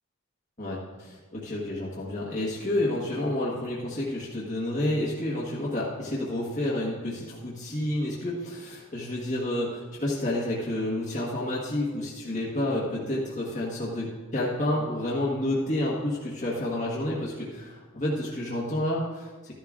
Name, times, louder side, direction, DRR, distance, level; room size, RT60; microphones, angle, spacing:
voice 1, 0.6-19.5, left 1 dB, 35° left, -6 dB, 1.4 m, -30 dB
13.5 x 10.5 x 2.5 m, 1.4 s
head